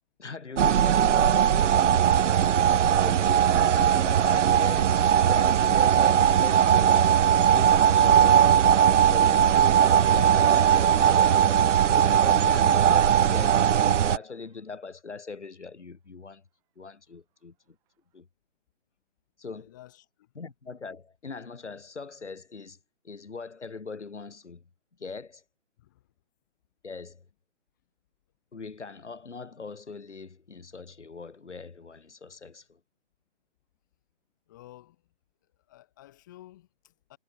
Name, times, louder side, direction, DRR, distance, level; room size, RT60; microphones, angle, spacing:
voice 1, 0.2-8.7 9.1-16.4 16.8-17.5 18.1-18.3 19.4-19.7 20.3-22.8 23.0-24.6 25.0-25.4 26.8-27.2 28.5-32.8, left 4 dB, 65° left, 5.0 m, -41 dB
sound 1, 0.6-14.2, right 9 dB, 75° right, 0.5 m, -20 dB
Laughter, 6.9-14.5, right 19 dB, 10° right, 2.2 m, -49 dB
voice 2, 19.6-20.3 25.8-26.1 34.5-35.0 35.7-37.2, left 15 dB, 15° left, 2.0 m, -52 dB
hypercardioid pair, 165°, 37 cm